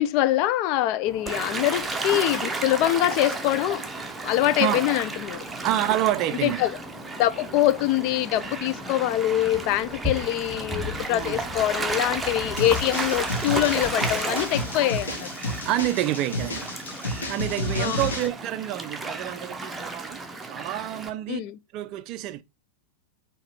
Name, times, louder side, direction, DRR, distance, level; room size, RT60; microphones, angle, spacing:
voice 1, 0.0-3.8 4.2-5.4 6.4-6.7 7.2-15.3 17.8-18.0 21.3-21.6, left 14 dB, 45° left, 0.3 m, -24 dB
sound 1, 1.0-14.9, left 3 dB, 5° left, 1.8 m, -39 dB
Gull seagull / Waves surf, 1.3-21.1, right 3 dB, 10° right, 0.7 m, -33 dB
voice 2, 5.6-6.6 11.1-11.4 15.6-16.7 17.3-20.2 20.5-21.4 21.7-22.4, right 14 dB, 40° right, 0.3 m, -28 dB
sound 2, 12.6-18.3, left 1 dB, 70° left, 1.0 m, -31 dB
4.7 x 3.1 x 3.1 m
figure-of-eight pair, 90°, 0 cm